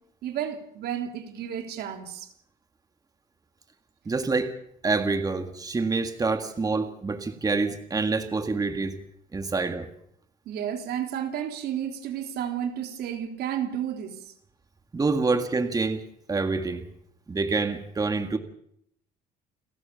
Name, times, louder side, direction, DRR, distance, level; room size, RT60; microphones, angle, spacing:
voice 1, 0.2-2.3 10.4-14.3, right 9 dB, 70° right, 3.4 m, -32 dB
voice 2, 4.1-4.5 4.8-9.0 9.3-9.9 14.9-16.0 16.3-16.9 17.3-18.4, right 3 dB, 20° right, 1.9 m, -26 dB
29.5 x 14.5 x 7.0 m
cardioid pair, 110°, 17 cm